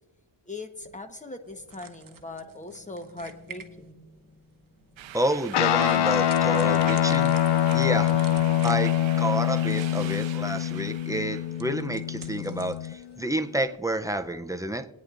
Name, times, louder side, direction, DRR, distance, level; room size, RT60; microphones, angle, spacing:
voice 1, 0.5-5.2, left 2 dB, 15° left, 7 dB, 1.0 m, -41 dB
sound 1, 1.4-14.3, right 6 dB, 40° right, 1.0 m, -51 dB
sound 2, 5.0-11.6, right 13 dB, 70° right, 0.5 m, -43 dB
voice 2, 5.1-7.4 7.7-8.2 8.6-14.9, right 1 dB, 5° right, 7 dB, 0.4 m, -29 dB
Guitar, 5.5-13.2, left 11 dB, 60° left, 0.5 m, -24 dB
21.5 x 9.4 x 2.5 m, 1.2 s
wide cardioid pair, 100°, 49 cm